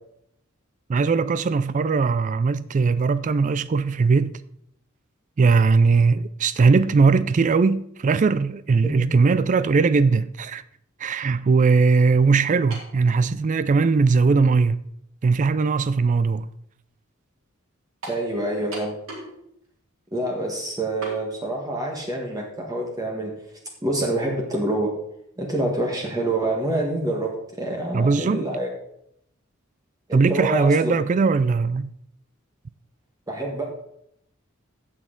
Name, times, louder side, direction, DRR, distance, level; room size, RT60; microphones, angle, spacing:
voice 1, 0.9-4.4 5.4-10.6 11.0-14.8 15.2-16.5 27.9-28.4 30.1-31.9, right 4 dB, 35° right, 0.3 m, -19 dB
sound 1, 12.7-13.0 13.9-14.0 18.0-18.3 18.7-19.4 19.6-19.7 21.0-21.2, right 2 dB, 75° right, 4.0 m, -36 dB
voice 2, 18.1-19.0 20.1-23.3 23.8-24.9 25.4-27.3 27.6-28.7 30.1-31.0 33.3-33.6, right 1 dB, 15° right, 1.5 m, -26 dB
16.0 x 6.2 x 3.9 m
head